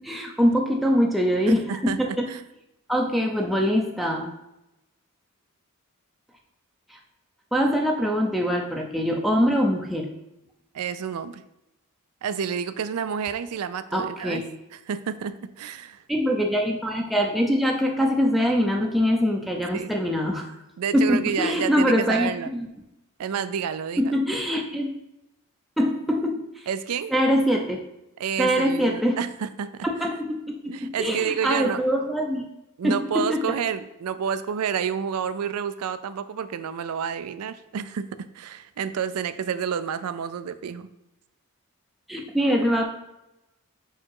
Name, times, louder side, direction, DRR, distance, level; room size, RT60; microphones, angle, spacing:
voice 1, 0.0-2.3 2.9-4.3 6.9-7.0 7.5-10.1 13.9-14.4 16.1-20.5 20.9-22.7 24.0-24.9 25.8-26.4 27.1-27.8 28.4-29.2 29.8-32.4 32.8-33.4 42.1-42.8, equal, ahead, 0 dB, 0.5 m, -23 dB
voice 2, 1.5-2.4 10.7-11.4 12.2-14.4 14.7-16.0 19.7-19.9 20.8-22.5 23.2-24.2 26.7-27.1 28.2-29.9 30.7-31.8 32.8-40.9, right 7 dB, 80° right, 13 dB, 0.4 m, -29 dB
4.8 x 4.5 x 4.6 m, 0.90 s
head